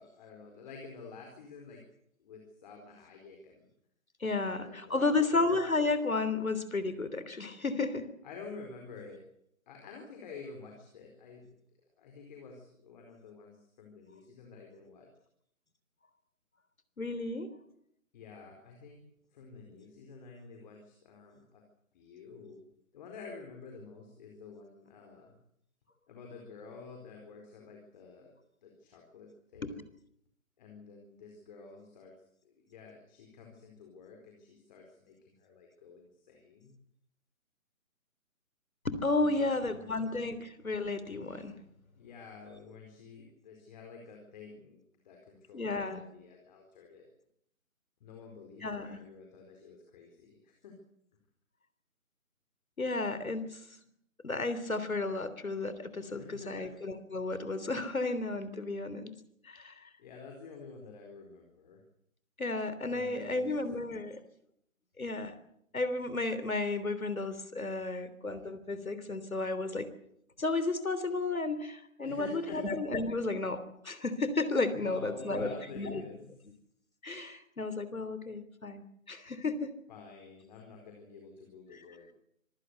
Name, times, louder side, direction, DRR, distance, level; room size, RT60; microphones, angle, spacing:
voice 1, 0.0-1.8 2.2-3.7 4.4-5.6 8.2-9.2 9.7-11.5 12.0-15.1 18.1-19.0 19.3-21.6 21.9-22.6 22.9-25.4 26.1-28.3 28.6-29.9 30.6-32.1 32.4-36.7 39.1-40.4 41.9-47.1 48.0-50.8 56.0-56.7 60.0-61.8 62.9-63.9 72.0-72.6 74.7-76.3 79.9-82.1, left 4 dB, 35° left, 2 dB, 4.5 m, -50 dB
voice 2, 4.2-8.1 17.0-17.5 29.6-29.7 38.8-41.5 45.5-46.0 48.6-49.0 52.8-53.6 54.2-59.1 59.4-59.7 62.4-64.2 65.0-65.3 65.7-69.9 70.4-76.0 77.0-79.7, left 3 dB, 80° left, 13 dB, 3.4 m, -33 dB
25.5 x 16.0 x 8.2 m, 0.73 s
figure-of-eight pair, 145°, 41 cm